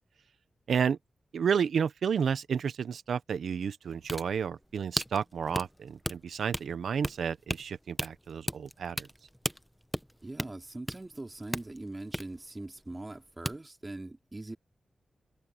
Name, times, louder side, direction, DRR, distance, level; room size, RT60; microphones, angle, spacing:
voice 1, 0.7-1.0 1.3-9.1, right 7 dB, 85° right, 0.8 m, -31 dB
sound 1, 3.8-13.2 13.4-13.6, equal, ahead, 1.1 m, -37 dB
voice 2, 10.2-14.6, right 2 dB, 25° right, 4.3 m, -42 dB
cardioid pair, 65°, 0 cm